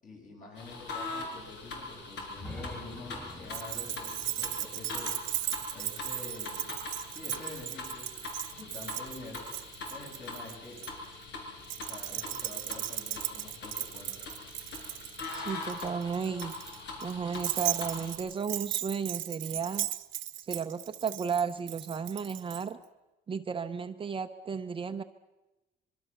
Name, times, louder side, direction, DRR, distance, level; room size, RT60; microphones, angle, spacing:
voice 1, 0.0-6.7 7.1-9.4 9.9-10.8 11.8-14.2, left 2 dB, 45° left, 0 dB, 7.9 m, -47 dB
sound 1, 0.5-18.1, left 3 dB, 70° left, 6.2 m, -42 dB
sound 2, 2.4-6.2, left 1 dB, 5° left, 1.3 m, -47 dB
Keys jangling, 3.5-10.9 11.6-22.6, right 14 dB, 85° right, 1.1 m, -37 dB
voice 2, 15.3-16.5 17.0-19.9 20.4-22.8 23.3-25.0, right 6 dB, 30° right, 8 dB, 0.7 m, -34 dB
25.0 x 23.0 x 7.0 m, 1.0 s
cardioid pair, 175°, 19 cm